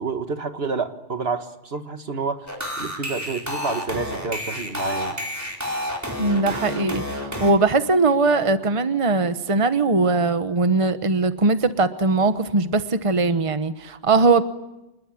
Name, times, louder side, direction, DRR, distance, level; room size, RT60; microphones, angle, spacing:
voice 1, 0.0-2.5 2.8-5.2, right 4 dB, 70° right, 8 dB, 1.8 m, -29 dB
sound 1, 2.5-7.5, left 1 dB, 15° right, 4.5 m, -29 dB
voice 2, 6.2-14.4, right 3 dB, 30° right, 10 dB, 1.1 m, -20 dB
28.0 x 20.5 x 9.9 m, 0.95 s
omnidirectional pair, 1.1 m